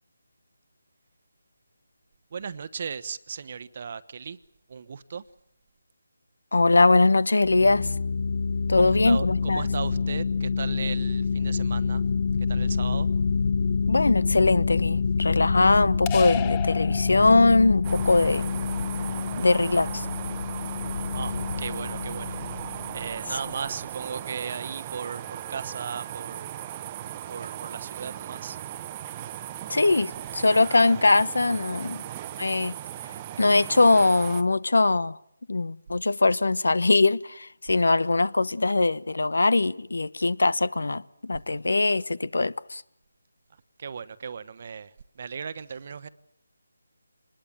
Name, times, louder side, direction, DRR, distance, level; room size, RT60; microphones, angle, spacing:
voice 1, 2.3-4.4 4.7-5.2 8.7-12.0 12.5-13.1 21.1-21.3 21.6-22.4 22.9-26.5 27.3-28.6 43.8-46.1, right 6 dB, 40° right, 1.1 m, -36 dB
voice 2, 6.5-7.9 8.7-9.7 13.9-18.4 19.4-20.1 29.7-32.0 32.4-32.7 33.4-35.2 35.5-42.8, left 3 dB, 80° left, 1.0 m, -21 dB
sound 1, 7.4-23.7, left 5 dB, 40° left, 1.2 m, -27 dB
sound 2, 16.1-17.7, left 9 dB, 20° left, 1.1 m, -33 dB
sound 3, 17.8-34.4, right 12 dB, 20° right, 0.9 m, -38 dB
25.5 x 20.5 x 7.5 m
figure-of-eight pair, 165°, 0 cm